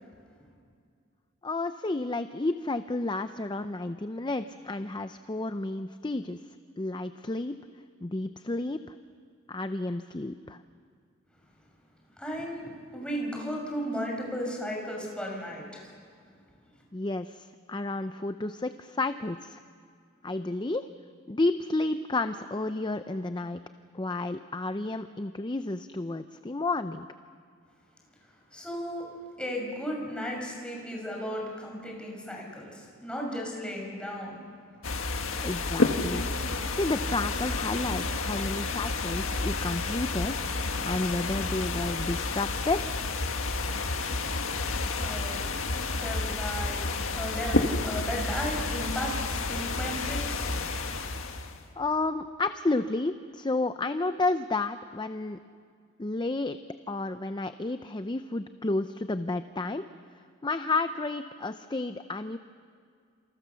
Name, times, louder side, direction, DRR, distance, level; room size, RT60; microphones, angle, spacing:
voice 1, 1.4-6.4 6.8-7.6 8.0-8.8 9.5-10.6 16.9-19.6 20.2-20.9 21.3-23.6 23.9-27.1 35.4-36.3 36.7-42.9 51.8-55.4 56.0-56.6 56.9-59.8 60.4-62.4, left 2 dB, 20° left, 10 dB, 0.6 m, -31 dB
voice 2, 12.2-15.9 28.5-29.1 29.4-34.4 44.9-45.5 46.0-46.8 47.1-50.5, equal, 5° left, -1 dB, 6.0 m, -35 dB
sound 1, 34.8-51.6, left 3 dB, 75° left, 1.8 m, -30 dB
29.0 x 28.0 x 7.0 m, 2.2 s
head